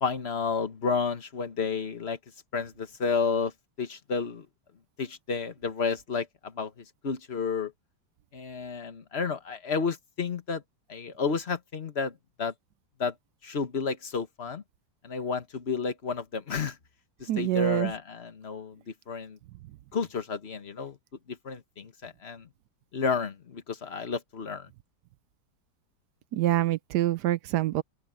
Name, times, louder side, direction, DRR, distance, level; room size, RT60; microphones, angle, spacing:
voice 1, 0.0-2.2 2.5-3.5 3.8-4.5 5.0-7.7 8.3-10.6 10.9-12.5 13.0-13.1 13.4-14.6 15.0-16.8 17.2-18.8 19.1-19.4 19.9-21.0 21.3-22.5 22.9-24.7, left 5 dB, 35° left, 1.5 m, -31 dB
voice 2, 17.3-17.9 26.3-27.8, right 14 dB, 70° right, 1.0 m, -26 dB
open air
omnidirectional pair, 2.1 m